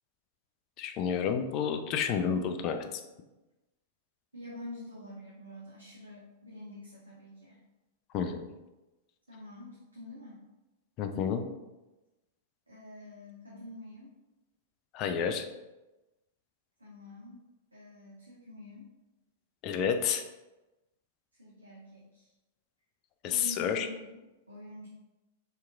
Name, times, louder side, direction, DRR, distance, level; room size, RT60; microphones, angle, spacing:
voice 1, 0.8-3.0 8.1-8.5 11.0-11.4 14.9-15.5 19.6-20.2 23.2-23.9, left 7 dB, 35° left, 7 dB, 0.3 m, -30 dB
voice 2, 4.3-7.6 9.3-10.5 12.7-14.1 16.8-17.4 17.7-18.9 21.3-22.3 23.3-24.9, left 1 dB, 85° right, -5 dB, 0.6 m, -47 dB
3.6 x 2.8 x 2.3 m, 1.0 s
figure-of-eight pair, 95°, 0 cm